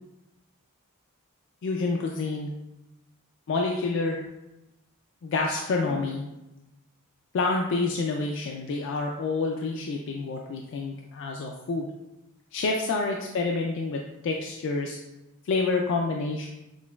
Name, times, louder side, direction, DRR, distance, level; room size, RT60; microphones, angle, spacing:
voice 1, 1.6-2.5 3.5-4.2 5.2-6.2 7.3-11.9 12.5-15.0 15.5-16.5, left 3 dB, 60° left, 0 dB, 0.3 m, -28 dB
6.0 x 2.2 x 2.2 m, 0.94 s
head